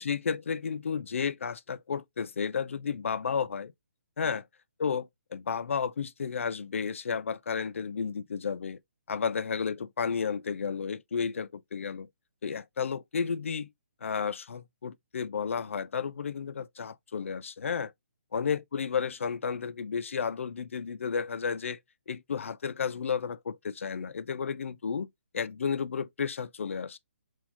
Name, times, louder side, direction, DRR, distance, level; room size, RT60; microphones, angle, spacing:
voice 1, 0.0-3.7 4.2-4.4 4.8-8.8 9.1-12.1 12.4-13.7 14.0-17.9 18.3-21.8 22.1-25.1 25.3-27.0, left 6 dB, 75° left, 0.4 m, -32 dB
4.1 x 2.3 x 2.8 m
hypercardioid pair, 170°, 7 cm